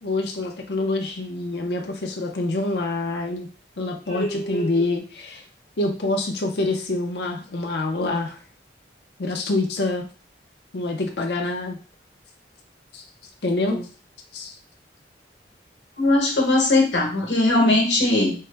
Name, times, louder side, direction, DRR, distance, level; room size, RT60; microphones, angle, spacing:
voice 1, 0.0-3.5 3.8-5.4 5.8-8.4 9.2-10.1 10.7-11.8 12.9-13.0 13.4-13.8 14.3-14.6, left 2 dB, 65° left, 2 dB, 0.6 m, -26 dB
voice 2, 4.1-4.8 13.7-13.8 16.0-18.3, left 2 dB, 85° left, 1 dB, 1.1 m, -20 dB
4.4 x 2.0 x 3.3 m, 0.36 s
head